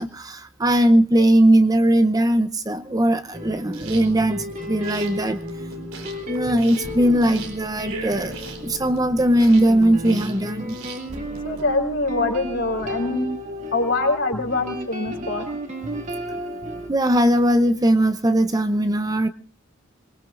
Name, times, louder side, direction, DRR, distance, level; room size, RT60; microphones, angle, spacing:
voice 1, 0.0-5.4 6.3-8.3 8.6-10.8 16.9-19.3, right 1 dB, 20° right, 9 dB, 0.7 m, -19 dB
sound 1, 3.3-16.9, equal, 35° right, 2.5 m, -33 dB
sound 2, 3.6-11.6, right 4 dB, 85° right, 4.2 m, -39 dB
voice 2, 11.4-13.3 13.7-15.5, left 2 dB, 60° left, 2 dB, 4.0 m, -24 dB
26.5 x 21.0 x 2.5 m, 0.37 s
head